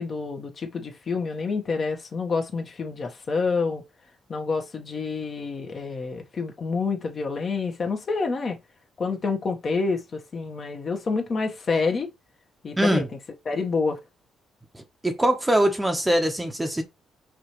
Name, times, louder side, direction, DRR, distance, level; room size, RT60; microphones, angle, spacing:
voice 1, 0.0-3.8 4.3-8.6 9.0-12.1 12.6-13.0 13.4-14.0, left 4 dB, 45° left, 1.1 m, -28 dB
voice 2, 12.8-13.1 14.7-16.8, right 1 dB, 10° right, 0.9 m, -23 dB
4.9 x 2.8 x 3.0 m
cardioid pair, 90°, 0 cm